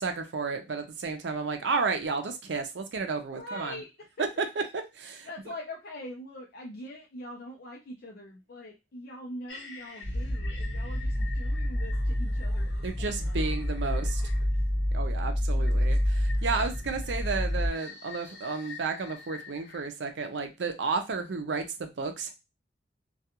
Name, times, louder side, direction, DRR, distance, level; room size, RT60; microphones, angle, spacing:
voice 1, 0.0-3.8 4.7-5.3 12.8-14.2 14.9-22.3, right 4 dB, 70° right, 6 dB, 0.5 m, -32 dB
voice 2, 3.3-3.9 4.2-4.5 5.3-13.4 13.8-14.3 15.5-16.1 16.5-16.6, left 1 dB, 55° left, -2 dB, 0.5 m, -44 dB
sound 1, 9.5-14.7 15.6-19.9, left 5 dB, 70° left, 0.9 m, -48 dB
sound 2, 10.0-17.7, equal, 30° right, 1.1 m, -28 dB
2.3 x 2.3 x 2.8 m, 0.24 s
head